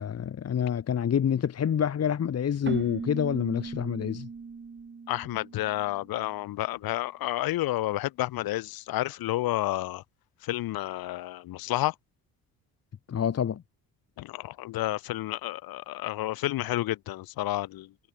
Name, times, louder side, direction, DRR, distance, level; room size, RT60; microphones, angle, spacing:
voice 1, 0.0-4.3 13.1-13.6, left 8 dB, 45° left, 1.7 m, -27 dB
Keyboard (musical), 2.6-6.3, right 5 dB, 30° right, 4.9 m, -38 dB
voice 2, 5.1-10.0 10.4-11.9 14.2-17.9, left 16 dB, 75° left, 5.8 m, -30 dB
supercardioid pair, 75°, 36 cm